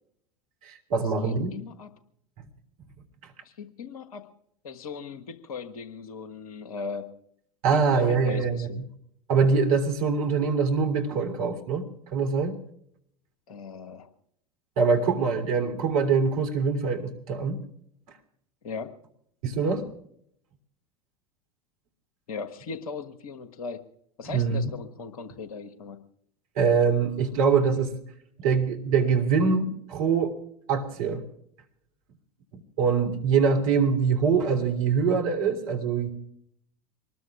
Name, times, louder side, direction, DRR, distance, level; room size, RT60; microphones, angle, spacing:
voice 1, 0.6-1.5 7.6-8.7 9.3-11.8 12.1-12.6 14.8-17.6 19.4-19.9 24.2-24.6 26.5-27.9 28.4-30.3 30.7-31.2 32.8-36.1, right 5 dB, 60° right, 4 dB, 3.2 m, -24 dB
voice 2, 1.2-1.9 3.4-4.3 4.6-7.1 7.7-8.8 13.5-14.1 18.6-18.9 22.3-23.8 24.2-26.0, left 5 dB, 65° left, 8 dB, 1.4 m, -38 dB
24.5 x 20.0 x 2.4 m, 0.70 s
figure-of-eight pair, 80°, 20 cm